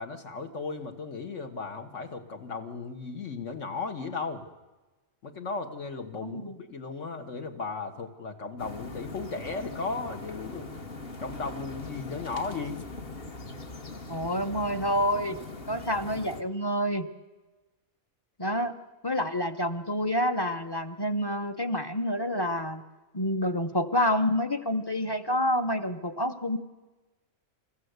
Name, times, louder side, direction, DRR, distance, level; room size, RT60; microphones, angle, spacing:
voice 1, 0.0-4.5 5.2-10.7 11.2-12.8, left 4 dB, 65° left, 5 dB, 1.7 m, -36 dB
voice 2, 6.2-6.6 14.1-15.4 15.7-17.1 18.4-18.8 19.0-22.8 23.1-26.6, equal, 20° left, 8 dB, 0.8 m, -28 dB
sound 1, 8.6-16.4, left 3 dB, 45° left, 1.7 m, -41 dB
28.0 x 14.5 x 8.0 m, 1.2 s
omnidirectional pair, 1.4 m